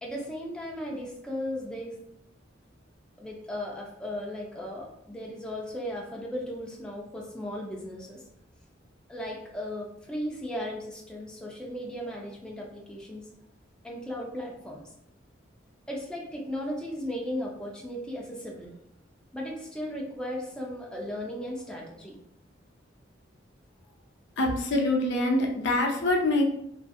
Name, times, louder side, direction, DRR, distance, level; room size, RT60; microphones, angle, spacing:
voice 1, 0.0-2.0 3.2-8.2 9.1-13.3 13.8-14.8 15.9-18.7 19.3-22.2, equal, 5° left, -3 dB, 0.4 m, -36 dB
voice 2, 24.4-26.4, left 2 dB, 65° left, 1 dB, 0.5 m, -25 dB
2.5 x 2.4 x 2.4 m, 0.75 s
head